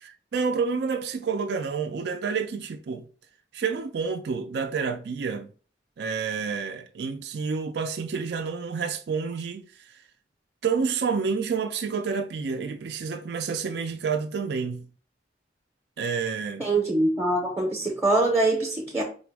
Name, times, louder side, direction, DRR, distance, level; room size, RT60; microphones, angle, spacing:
voice 1, 0.0-3.0 3.5-5.5 6.0-9.9 10.6-14.9 16.0-16.7, right 5 dB, 65° right, 0.4 m, -29 dB
voice 2, 16.6-19.0, right 2 dB, 10° right, 0.6 m, -23 dB
4.2 x 2.0 x 4.5 m
head